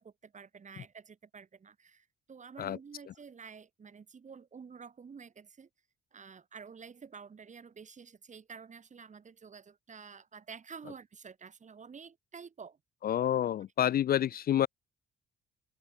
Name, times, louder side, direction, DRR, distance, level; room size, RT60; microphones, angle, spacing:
voice 1, 0.0-5.7 6.1-12.8, right 6 dB, 40° right, 2.2 m, -50 dB
voice 2, 13.0-14.7, left 11 dB, 50° left, 0.4 m, -28 dB
open air
cardioid pair, 90°, 20 cm